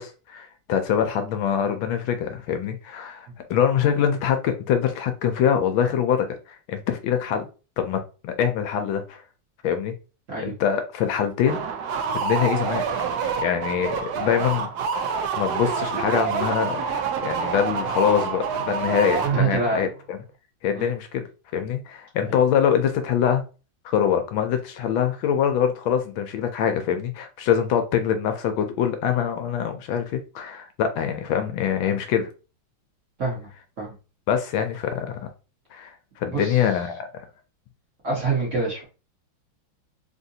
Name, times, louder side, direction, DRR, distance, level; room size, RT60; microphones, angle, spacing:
voice 1, 0.0-7.5 7.8-9.2 9.6-9.9 10.4-11.7 12.1-12.8 13.4-14.7 15.4-20.2 20.6-21.2 21.5-23.4 23.8-32.3 34.3-35.3 35.7-37.3, left 8 dB, 75° left, 7 dB, 1.3 m, -24 dB
sound 1, 11.5-19.8, right 6 dB, 80° right, 0.9 m, -27 dB
voice 2, 19.3-19.9 20.7-20.9 33.2-33.5 33.8-33.9 36.3-36.6 38.0-38.8, right 3 dB, 45° right, -3 dB, 1.3 m, -26 dB
3.7 x 2.6 x 2.7 m, 0.33 s
omnidirectional pair, 2.3 m